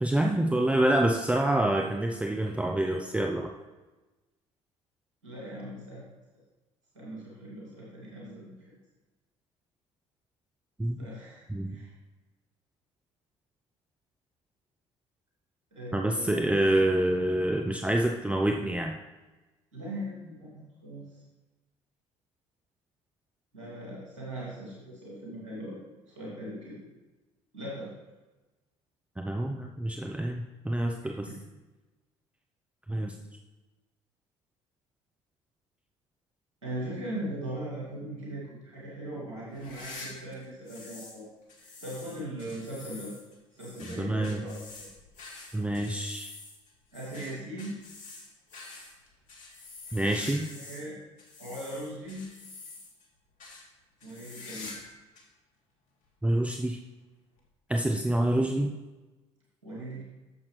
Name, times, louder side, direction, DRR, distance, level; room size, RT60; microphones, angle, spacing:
voice 1, 0.0-3.5 10.8-11.0 11.5-11.7 15.9-18.9 29.2-31.3 32.9-33.1 43.8-44.4 45.5-46.3 49.9-50.5 56.2-56.8 57.7-58.7, right 1 dB, 10° right, 2 dB, 0.6 m, -27 dB
voice 2, 5.2-6.0 6.9-8.5 11.0-11.9 15.7-16.6 19.7-21.1 23.5-26.7 27.5-27.9 31.3-31.4 36.6-41.2 41.6-43.1 43.5-44.6 46.9-47.8 50.5-51.0 51.4-52.2 54.0-54.7 59.6-60.0, right 1 dB, 90° right, -6 dB, 2.4 m, -39 dB
sound 1, 39.5-41.2 41.5-50.9 51.2-53.1 53.4-53.6 54.0-54.9 55.2-55.3 56.0-56.1 57.4-57.5, left 3 dB, 60° left, 1.9 m, -46 dB
9.3 x 7.1 x 3.2 m, 1.2 s
hypercardioid pair, 60°, 15 cm